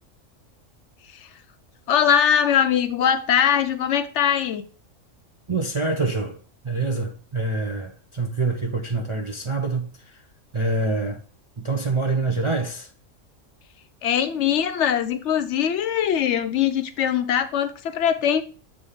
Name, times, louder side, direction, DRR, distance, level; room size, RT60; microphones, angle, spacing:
voice 1, 1.9-4.7 14.0-18.4, left 8 dB, 70° left, 0.8 m, -21 dB
voice 2, 5.5-6.4 6.6-10.2 10.5-11.2 11.6-12.9, right 3 dB, 40° right, 0.4 m, -26 dB
7.3 x 2.8 x 4.9 m
omnidirectional pair, 1.3 m